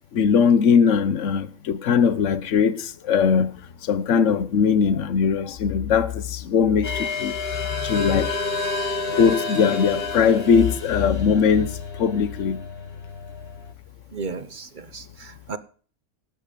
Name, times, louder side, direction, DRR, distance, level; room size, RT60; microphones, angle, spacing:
voice 1, 0.1-3.6 3.8-8.4 9.1-12.6, left 6 dB, 60° left, 1.2 m, -20 dB
sound 1, 6.8-13.7, left 3 dB, 40° left, 1.8 m, -30 dB
voice 2, 14.1-15.6, right 4 dB, 40° right, 0.8 m, -34 dB
18.0 x 9.2 x 5.3 m
omnidirectional pair, 1.5 m